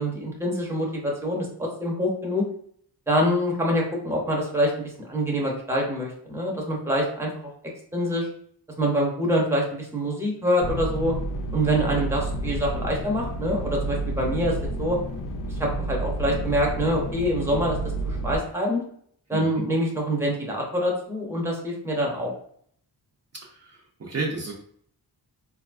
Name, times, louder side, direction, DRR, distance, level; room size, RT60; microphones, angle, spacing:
voice 1, 0.0-2.5 3.1-7.5 7.9-8.3 8.8-11.1 11.5-15.0 15.6-17.8 18.0-18.8 19.3-22.3, equal, 5° right, -1 dB, 0.7 m, -25 dB
sound 1, 10.6-18.4, right 1 dB, 55° left, 0.4 m, -30 dB
voice 2, 19.3-19.7 23.4-24.5, right 3 dB, 40° right, -3 dB, 0.6 m, -32 dB
3.9 x 2.3 x 2.4 m, 0.63 s
wide cardioid pair, 115°, 40 cm